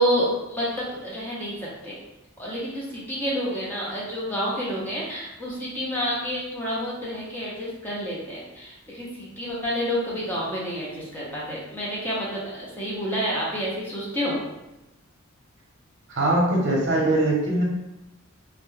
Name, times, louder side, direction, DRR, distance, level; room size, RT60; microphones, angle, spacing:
voice 1, 0.0-1.9 2.4-14.4, equal, 10° left, -6 dB, 0.5 m, -29 dB
voice 2, 16.1-17.6, right 1 dB, 60° right, -2 dB, 0.7 m, -21 dB
2.2 x 2.0 x 3.1 m, 0.94 s
head